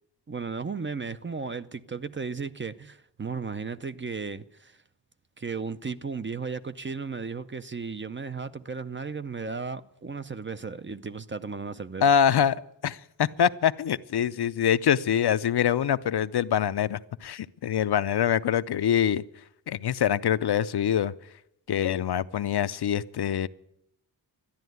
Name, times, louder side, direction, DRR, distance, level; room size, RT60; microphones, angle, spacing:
voice 1, 0.3-4.8 5.4-12.0, right 5 dB, 25° right, 0.5 m, -35 dB
voice 2, 12.0-12.6 12.8-19.2 19.7-21.1 21.7-23.5, left 9 dB, 60° left, 0.6 m, -24 dB
13.0 x 10.5 x 9.3 m
wide cardioid pair, 130°, 44 cm